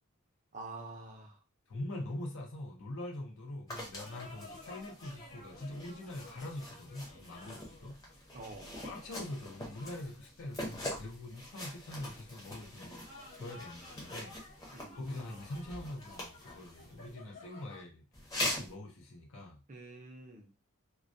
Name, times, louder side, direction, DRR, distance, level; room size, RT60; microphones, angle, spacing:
voice 1, 0.5-1.4 8.3-8.8 14.7-15.0 19.7-20.5, right 3 dB, 35° right, 0.5 m, -47 dB
voice 2, 1.7-8.3 8.8-13.1 13.3-14.4 14.9-18.0 18.4-19.6, left 1 dB, 65° left, 0.6 m, -44 dB
sound 1, 3.7-17.1 18.1-18.7, left 1 dB, 15° left, 0.7 m, -43 dB
sound 2, 4.0-17.8, left 2 dB, 45° left, 1.1 m, -55 dB
2.2 x 2.1 x 2.5 m
head